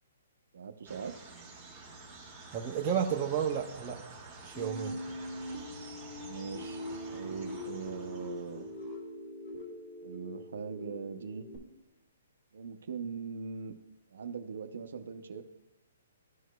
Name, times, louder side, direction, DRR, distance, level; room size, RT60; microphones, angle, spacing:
voice 1, 0.5-1.2 6.2-6.8 7.1-8.7 10.0-11.5 12.5-13.7 14.1-15.4, right 6 dB, 70° right, 8 dB, 0.6 m, -41 dB
sound 1, 0.8-8.9, right 3 dB, 10° left, 1.6 m, -50 dB
voice 2, 2.5-4.0 4.4-5.0, right 8 dB, 20° right, -1 dB, 0.5 m, -32 dB
sound 2, 4.5-11.6, left 1 dB, 25° left, 2.0 m, -42 dB
13.0 x 4.7 x 2.2 m, 0.98 s
hypercardioid pair, 165°, 0 cm